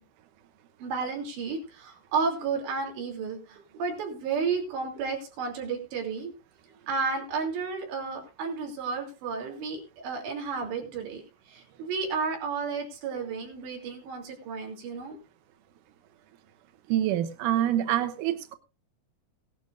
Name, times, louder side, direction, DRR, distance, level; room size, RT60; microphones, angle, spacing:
voice 1, 0.8-6.3 6.9-11.2 11.5-15.2, right 5 dB, 90° right, 1 dB, 5.4 m, -32 dB
voice 2, 16.9-18.5, right 11 dB, 70° right, 8 dB, 2.1 m, -26 dB
18.5 x 11.5 x 2.6 m, 0.32 s
omnidirectional pair, 4.9 m